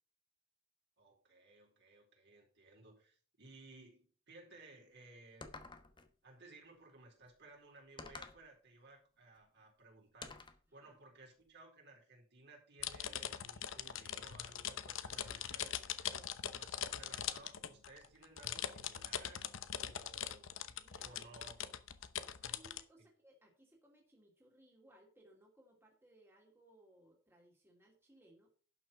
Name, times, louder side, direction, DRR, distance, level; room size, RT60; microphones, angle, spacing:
voice 1, 1.0-5.5 6.2-10.4 10.7-15.8 16.5-20.5 21.0-21.7 23.0-23.1, right 2 dB, 55° right, -1 dB, 4.3 m, -59 dB
sound 1, 5.4-6.1 8.0-8.5 10.2-10.6, left 3 dB, 25° left, 1.1 m, -50 dB
sound 2, 12.8-22.8, left 9 dB, 65° left, 0.9 m, -42 dB
voice 2, 15.1-16.3 16.9-17.2 20.8-21.2 22.4-28.5, right 1 dB, 10° right, 0 dB, 2.6 m, -65 dB
11.5 x 6.2 x 5.7 m, 0.41 s
head